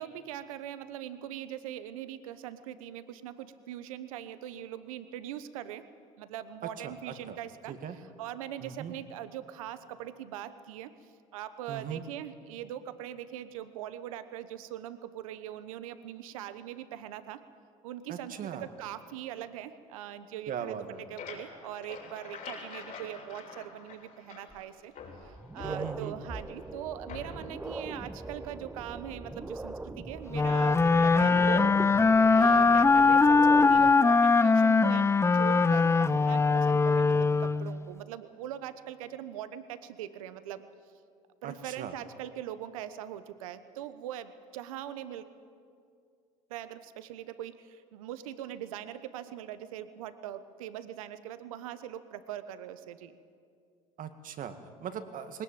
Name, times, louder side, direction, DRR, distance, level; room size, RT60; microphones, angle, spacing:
voice 1, 0.0-5.8 6.2-10.9 11.3-17.4 17.8-20.8 21.1-24.9 25.2-31.9 32.3-40.7 41.4-45.2 46.5-53.1, right 11 dB, 85° right, 12 dB, 1.1 m, -41 dB
voice 2, 6.8-7.4 7.7-8.0 8.6-8.9 11.7-12.0 18.1-18.7 20.5-21.0 25.6-26.1 41.4-41.9 54.0-55.4, right 8 dB, 50° right, 8 dB, 1.9 m, -39 dB
sound 1, 20.7-24.6 24.9-26.3 27.1-27.6, left 5 dB, 55° left, 6.5 m, -46 dB
sound 2, 24.5-24.6 25.1-33.9, right 2 dB, 10° right, 1.0 m, -41 dB
sound 3, 30.3-37.8, left 4 dB, 15° left, 0.6 m, -22 dB
20.0 x 18.5 x 9.0 m, 2.3 s
hypercardioid pair, 75°, 17 cm